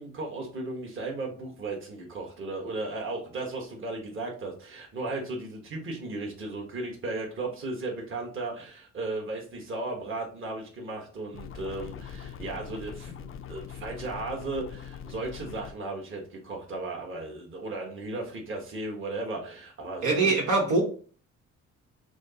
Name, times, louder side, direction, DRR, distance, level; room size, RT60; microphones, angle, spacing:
voice 1, 0.0-20.3, right 2 dB, 40° right, 0 dB, 1.3 m, -35 dB
sound 1, 11.3-15.7, left 8 dB, 45° left, 0.4 m, -42 dB
voice 2, 20.0-20.8, right 3 dB, 75° right, -1 dB, 1.3 m, -23 dB
6.0 x 2.1 x 2.8 m, 0.41 s
cardioid pair, 90°, 30 cm